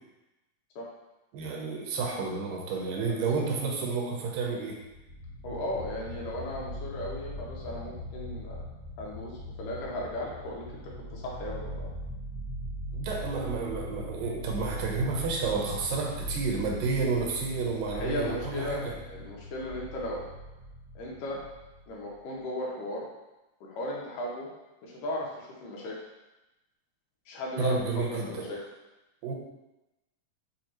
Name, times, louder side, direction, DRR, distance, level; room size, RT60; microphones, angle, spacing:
voice 1, 1.3-4.8 12.9-18.9 27.6-28.5 29.2-29.3, right 4 dB, 80° right, 0 dB, 2.4 m, -30 dB
sound 1, 4.9-22.1, equal, 50° left, 1.2 m, -40 dB
voice 2, 5.4-8.7 9.0-11.9 17.9-20.3 21.0-21.4 21.9-23.1 23.6-24.5 24.8-26.0 27.3-27.8 28.1-28.6, left 1 dB, 80° left, -3 dB, 2.4 m, -36 dB
6.4 x 2.8 x 2.8 m, 1.0 s
omnidirectional pair, 3.9 m